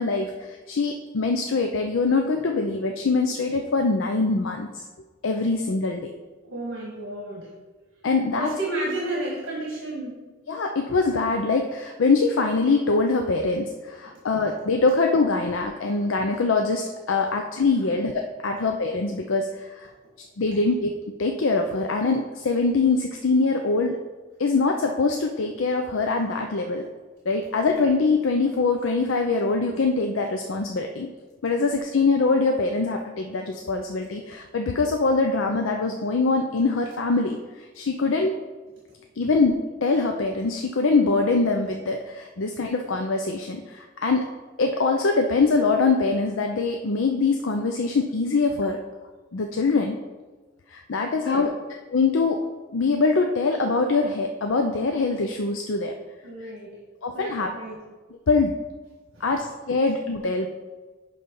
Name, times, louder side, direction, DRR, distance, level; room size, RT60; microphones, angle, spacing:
voice 1, 0.0-4.8 5.2-6.1 8.0-8.5 10.5-19.9 20.2-20.9 21.2-24.0 24.4-26.9 27.3-31.1 31.4-38.3 39.2-44.3 44.6-48.8 49.3-50.0 50.7-51.5 51.9-52.4 52.7-55.9 57.0-57.5 58.3-58.5 59.2-60.5, left 3 dB, 90° left, 4 dB, 0.6 m, -23 dB
voice 2, 6.4-7.5 8.4-10.2 17.8-17.9 51.2-51.5 56.2-56.7 57.1-57.8 59.1-59.2, right 2 dB, 65° right, -4 dB, 1.6 m, -32 dB
9.8 x 3.3 x 5.4 m, 1.3 s
head